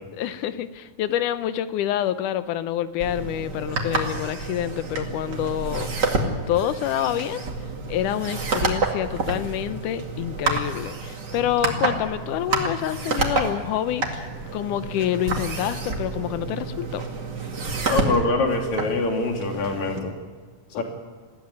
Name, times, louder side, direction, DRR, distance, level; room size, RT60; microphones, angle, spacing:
voice 1, 0.2-5.9 6.5-7.4 7.9-14.3 14.5-17.0 20.7-20.8, left 11 dB, 90° left, 12 dB, 2.4 m, -27 dB
sound 1, 3.0-20.0, right 3 dB, 35° right, 2.6 m, -29 dB
voice 2, 17.9-20.1 20.8-20.9, left 3 dB, 65° left, 2 dB, 4.0 m, -24 dB
21.0 x 15.0 x 9.7 m, 1.4 s
omnidirectional pair, 3.5 m